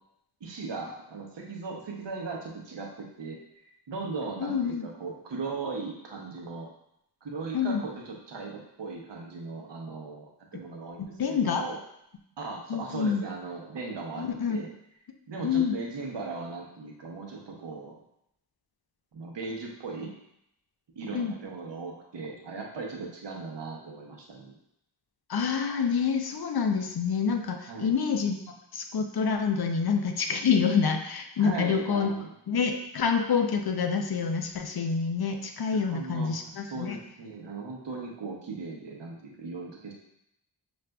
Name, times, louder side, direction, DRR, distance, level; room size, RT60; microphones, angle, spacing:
voice 1, 0.4-3.4 3.9-6.7 7.2-11.8 12.4-14.7 15.3-17.9 19.1-20.1 21.0-24.6 27.7-27.9 31.4-32.3 35.7-36.3 36.7-39.9, right 3 dB, 85° right, 0 dB, 0.8 m, -38 dB
voice 2, 4.4-4.9 7.5-7.8 10.5-10.6 11.0-11.6 12.7-13.2 14.2-14.6 15.4-15.8 21.1-21.3 25.3-32.1 32.5-37.0, left 6 dB, 65° left, 5 dB, 0.5 m, -27 dB
6.2 x 2.5 x 2.2 m, 0.79 s
wide cardioid pair, 85°, 42 cm